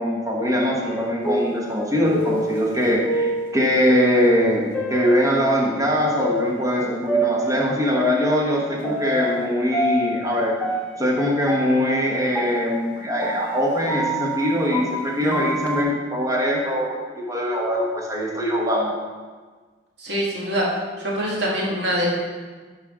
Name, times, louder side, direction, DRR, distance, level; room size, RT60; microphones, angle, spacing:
voice 1, 0.0-10.5 11.0-18.9, equal, 15° right, -2 dB, 1.1 m, -22 dB
sound 1, 0.8-5.7 6.2-9.4 9.7-15.8, right 1 dB, 5° left, 0.8 m, -27 dB
voice 2, 15.2-15.5 20.0-20.7 21.0-22.1, equal, 60° right, -4 dB, 1.9 m, -25 dB
10.5 x 5.0 x 3.6 m, 1.4 s
head